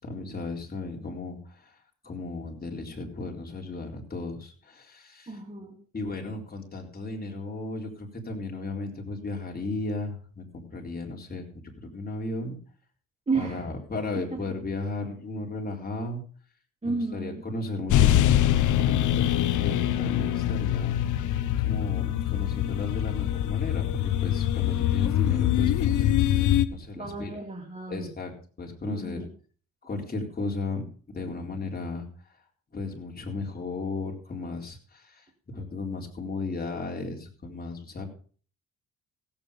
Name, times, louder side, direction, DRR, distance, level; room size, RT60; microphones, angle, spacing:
voice 1, 0.0-1.8 2.0-5.4 5.9-12.6 13.3-16.2 16.8-21.0 21.2-26.1 26.7-27.4 27.9-29.2 29.8-32.3 32.7-38.1, left 2 dB, 30° left, 1 dB, 4.1 m, -35 dB
voice 2, 5.3-5.8 13.3-13.6 14.1-14.4 16.8-17.4 27.0-28.1 28.9-29.3, right 4 dB, 20° right, 2 dB, 2.6 m, -32 dB
sound 1, 17.9-26.6, left 11 dB, 80° left, 1.0 m, -24 dB
16.0 x 8.8 x 5.3 m, 0.42 s
cardioid pair, 90°, 30 cm